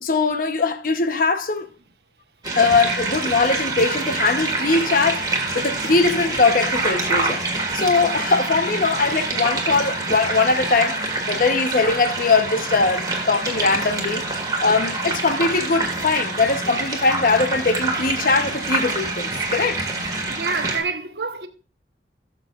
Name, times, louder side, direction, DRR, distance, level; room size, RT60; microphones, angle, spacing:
voice 1, 0.0-1.7 2.6-19.8, left 4 dB, 50° left, 0.8 m, -21 dB
sound 1, 2.4-20.8, right 3 dB, 20° right, 1.9 m, -26 dB
voice 2, 20.4-21.5, right 4 dB, 65° right, 1.0 m, -27 dB
17.0 x 6.9 x 2.4 m
head